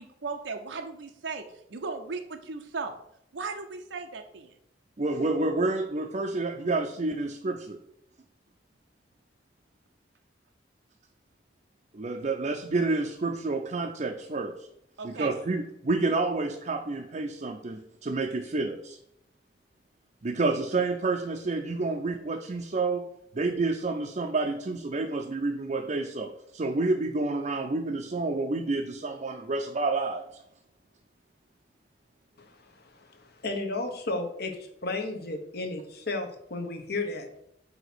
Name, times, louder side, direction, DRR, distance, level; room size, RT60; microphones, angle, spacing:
voice 1, 0.0-1.4 1.7-2.9 3.3-4.5 15.0-15.4, right 4 dB, 85° right, 4 dB, 0.6 m, -36 dB
voice 2, 5.0-7.8 11.9-14.7 15.0-19.0 20.2-23.1 23.3-30.3, right 3 dB, 40° right, 3 dB, 0.5 m, -29 dB
voice 3, 33.4-34.5 34.8-37.3, left 2 dB, 60° left, 4 dB, 1.1 m, -32 dB
7.9 x 2.9 x 6.0 m, 0.74 s
head